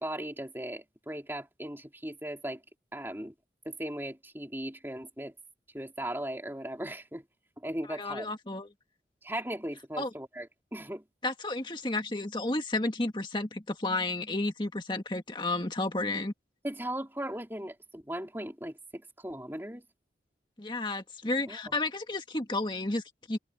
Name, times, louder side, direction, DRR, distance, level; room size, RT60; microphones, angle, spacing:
voice 1, 0.0-2.6 2.9-3.3 3.7-5.3 5.7-7.2 7.6-8.3 9.2-10.5 10.7-11.0 16.6-19.8 21.5-21.6, right 1 dB, 15° right, 3.7 m, -37 dB
voice 2, 7.9-8.7 10.0-10.1 11.2-16.3 20.6-23.4, left 2 dB, 25° left, 1.9 m, -32 dB
head